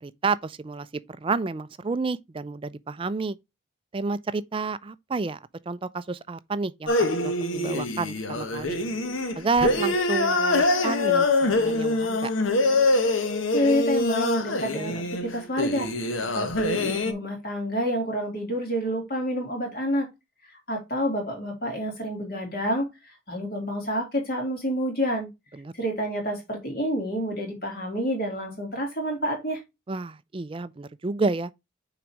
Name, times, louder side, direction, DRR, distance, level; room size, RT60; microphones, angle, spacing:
voice 1, 0.0-3.4 3.9-5.4 5.7-8.8 9.4-12.3 25.5-25.7 29.9-31.5, right 4 dB, 25° right, 0.4 m, -30 dB
sound 1, 6.9-17.1, left 2 dB, 80° left, 1.1 m, -24 dB
voice 2, 13.5-15.9 16.2-20.1 20.7-22.9 23.3-25.3 25.7-29.6, equal, 45° left, 2.6 m, -28 dB
6.1 x 4.1 x 4.7 m
head